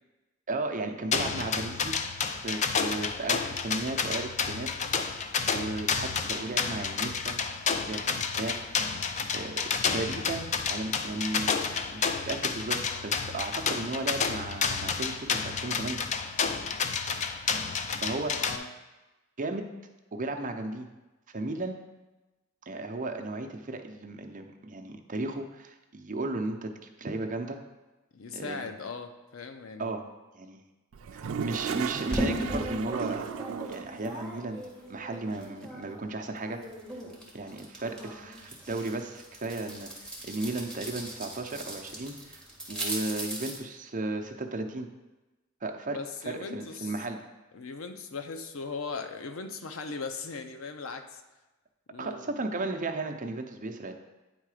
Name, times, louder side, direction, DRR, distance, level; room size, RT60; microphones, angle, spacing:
voice 1, 0.5-2.0 2.3-4.7 5.5-7.4 7.8-9.5 9.9-11.6 11.9-16.0 18.0-18.5 19.4-19.7 20.1-20.9 21.3-21.8 22.7-26.7 27.0-27.6 28.3-28.7 29.8-30.0 30.3-30.6 31.1-33.3 33.7-36.6 37.3-44.9 45.6-46.0 46.2-47.2 52.0-53.9, right 2 dB, 40° right, 4 dB, 0.6 m, -35 dB
sound 1, 1.1-18.6, left 5 dB, 35° left, 0.4 m, -30 dB
voice 2, 7.9-8.3 18.4-18.7 28.1-30.0 45.9-47.0 47.5-51.2 51.9-52.3, left 4 dB, 85° left, 7 dB, 0.6 m, -39 dB
Toilet flush, 30.9-34.0, right 6 dB, 90° right, 0.4 m, -35 dB
sound 2, 32.1-36.0 36.4-43.6, right 1 dB, 5° left, 1.6 m, -38 dB
9.1 x 3.7 x 4.9 m, 1.1 s
head